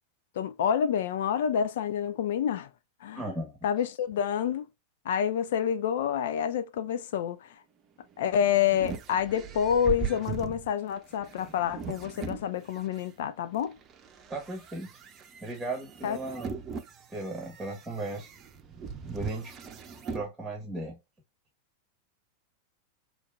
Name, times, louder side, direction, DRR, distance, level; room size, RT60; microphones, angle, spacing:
voice 1, 0.4-2.7 3.0-3.2 3.6-4.6 5.1-7.5 8.2-13.8 16.0-16.2, left 8 dB, 55° left, 0.4 m, -28 dB
voice 2, 3.1-3.6 14.3-14.9 15.4-16.6 17.1-18.3 19.1-19.5 20.1-21.0, right 2 dB, 5° right, 1.4 m, -36 dB
sound 1, 8.0-13.1 13.6-20.3, right 6 dB, 30° right, 0.7 m, -40 dB
6.3 x 3.1 x 2.5 m
figure-of-eight pair, 90°, 0 cm